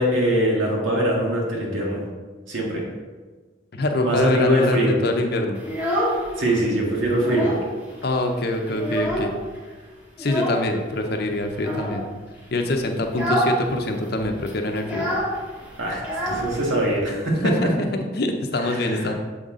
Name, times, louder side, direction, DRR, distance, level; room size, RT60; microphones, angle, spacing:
voice 1, 0.0-2.0 2.5-2.8 4.0-5.0 6.4-7.5 15.8-17.5 18.6-19.1, right 1 dB, 85° right, -3 dB, 1.7 m, -22 dB
voice 2, 3.7-5.6 8.0-9.3 10.2-12.0 12.5-15.1 17.4-19.1, left 1 dB, 50° left, 4 dB, 0.6 m, -24 dB
Child speech kid speaking, 5.6-6.6 6.9-7.7 8.0-8.1 8.5-9.6 10.2-10.7 11.5-12.1 12.5-12.7 13.1-13.6 13.9-14.0 14.2-17.0, equal, 10° right, 1.1 m, -26 dB
7.1 x 4.0 x 3.7 m, 1.3 s
head